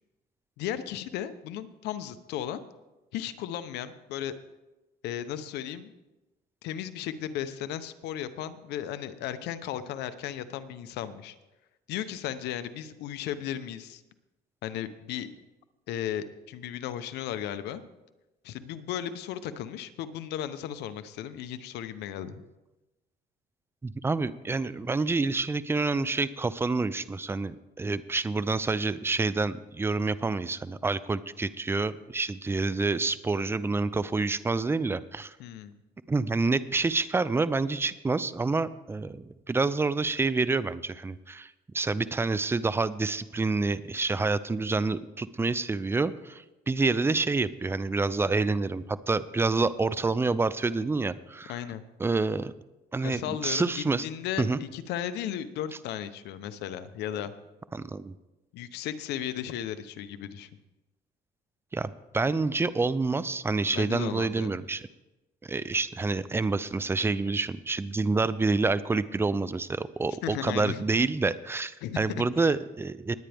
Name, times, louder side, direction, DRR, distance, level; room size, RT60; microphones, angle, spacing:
voice 1, 0.6-2.6 3.1-4.3 5.0-5.9 6.6-11.4 11.9-14.0 14.6-15.3 15.9-17.8 18.4-22.4 35.4-35.8 51.5-51.8 53.0-57.3 58.5-60.5 63.7-64.5 70.2-70.8 71.8-72.5, left 10 dB, 85° left, 12 dB, 0.8 m, -35 dB
voice 2, 23.8-35.3 36.1-51.5 52.0-52.5 52.9-54.0 54.4-54.6 57.7-58.1 61.7-64.9 65.4-73.1, right 3 dB, 15° right, 16 dB, 0.5 m, -28 dB
20.0 x 9.0 x 3.5 m, 1.0 s
cardioid pair, 110°, 17 cm